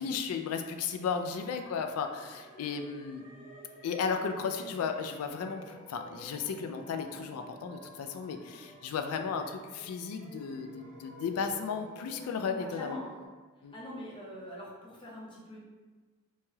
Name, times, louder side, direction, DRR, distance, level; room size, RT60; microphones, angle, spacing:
voice 1, 0.0-3.2 3.8-13.0 13.6-13.7, left 6 dB, 85° left, 10 dB, 0.3 m, -34 dB
sound 1, 1.0-13.3, equal, 40° right, 0.9 m, -53 dB
voice 2, 13.7-15.6, left 1 dB, 25° left, -4 dB, 0.6 m, -43 dB
3.1 x 2.2 x 2.7 m, 1.3 s
head